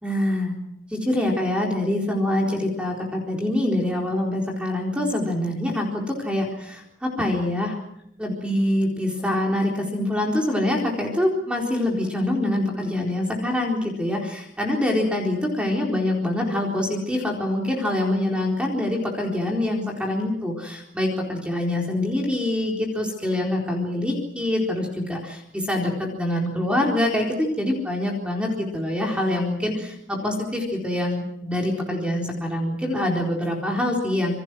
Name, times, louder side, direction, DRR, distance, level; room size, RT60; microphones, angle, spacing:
voice 1, 0.0-0.6 0.9-7.8 8.2-34.4, left 1 dB, 5° right, 0 dB, 4.2 m, -25 dB
28.0 x 23.5 x 6.2 m, 0.74 s
head